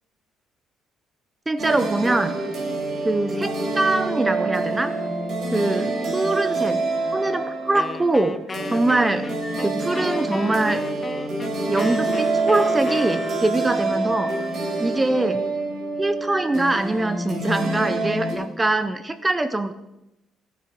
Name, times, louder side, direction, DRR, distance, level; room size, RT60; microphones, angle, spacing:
voice 1, 1.5-2.3 3.0-4.9 5.5-6.8 7.1-9.3 9.6-10.8 11.7-14.4 14.8-15.5 16.0-19.7, right 2 dB, 15° right, 12 dB, 0.7 m, -23 dB
sound 1, 1.6-18.3, right 3 dB, 50° right, 5.2 m, -26 dB
Wind instrument woodwind instrument, 7.7-13.8, left 4 dB, 25° left, 0.8 m, -35 dB
sound 2, 9.4-9.8 11.7-12.3 12.9-13.4 14.1-14.6 16.2-16.7, equal, 10° left, 1.3 m, -40 dB
15.0 x 9.4 x 4.7 m, 0.91 s
cardioid pair, 120°, 0 cm